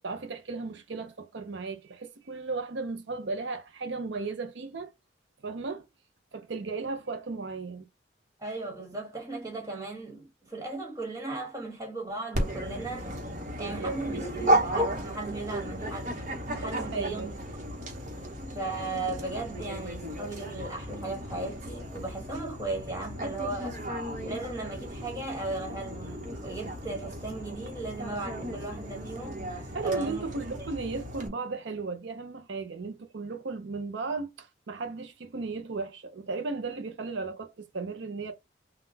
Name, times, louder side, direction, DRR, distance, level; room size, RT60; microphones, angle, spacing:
voice 1, 0.0-4.9 5.4-5.9 6.3-7.8 13.6-14.0 16.5-17.3 29.7-38.3, right 4 dB, 75° right, 0.6 m, -35 dB
voice 2, 8.4-13.1 13.6-16.3 16.5-17.3 18.5-23.8 24.2-30.4, right 2 dB, 15° right, 1.5 m, -36 dB
Dog, 12.3-31.3, right 1 dB, 40° right, 1.0 m, -34 dB
3.8 x 2.3 x 3.9 m
head